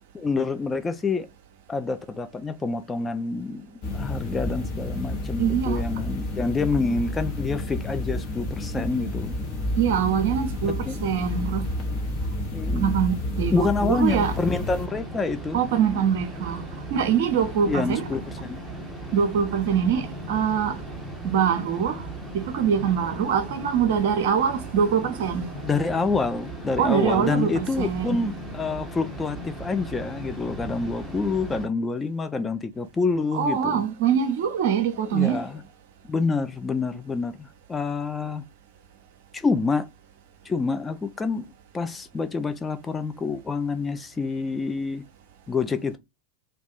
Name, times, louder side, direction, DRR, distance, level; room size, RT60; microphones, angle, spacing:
voice 1, 0.1-1.3 1.7-3.7 3.9-9.4 10.6-11.0 12.5-13.0 13.5-15.6 17.7-18.6 25.6-33.9 35.1-35.6 36.0-38.4 39.3-39.9 40.4-41.5 41.7-45.0 45.5-46.0, left 4 dB, 15° left, 0.3 m, -27 dB
sound 1, 3.8-14.9, left 1 dB, 35° left, 0.9 m, -30 dB
voice 2, 5.4-5.8 8.7-8.8 9.8-11.7 12.8-14.3 15.5-16.6 16.9-18.0 19.1-20.8 21.2-22.1 22.3-25.5 26.8-28.3 33.3-35.4, right 7 dB, 50° right, 0.6 m, -24 dB
sound 2, 14.1-31.7, right 2 dB, 5° right, 0.9 m, -37 dB
2.5 x 2.3 x 3.9 m
figure-of-eight pair, 90°, 0 cm